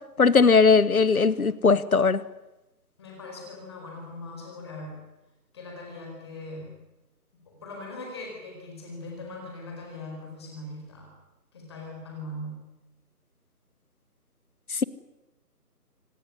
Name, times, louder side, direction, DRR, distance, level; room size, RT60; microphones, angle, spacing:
voice 1, 0.2-2.2, left 4 dB, 60° left, 19 dB, 1.2 m, -19 dB
voice 2, 3.0-5.0 5.5-6.7 7.5-11.1 11.5-12.6, left 2 dB, 15° left, 0 dB, 4.7 m, -40 dB
25.5 x 18.0 x 9.9 m, 1.0 s
figure-of-eight pair, 175°, 48 cm